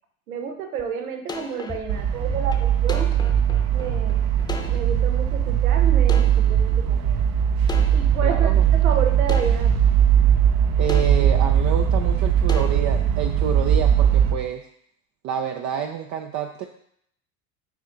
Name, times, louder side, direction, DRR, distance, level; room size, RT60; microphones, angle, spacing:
voice 1, 0.3-3.1 3.7-4.3 4.7-7.2 7.9-9.7, right 6 dB, 85° right, 5 dB, 0.9 m, -30 dB
sound 1, 0.8-0.9 1.3-5.0 5.5-5.6 6.1-7.2 7.7-8.2 8.7-8.8 9.3-9.8 10.3-10.4 10.9-11.4 11.9-12.0 12.5-13.0, left 1 dB, 10° left, 0.9 m, -33 dB
sound 2, 1.9-14.3, right 9 dB, 60° right, 0.9 m, -19 dB
voice 2, 8.2-8.7 10.8-14.6 15.2-16.6, right 9 dB, 40° right, 4 dB, 0.6 m, -28 dB
7.1 x 4.4 x 3.8 m, 0.70 s
hypercardioid pair, 80°, 42 cm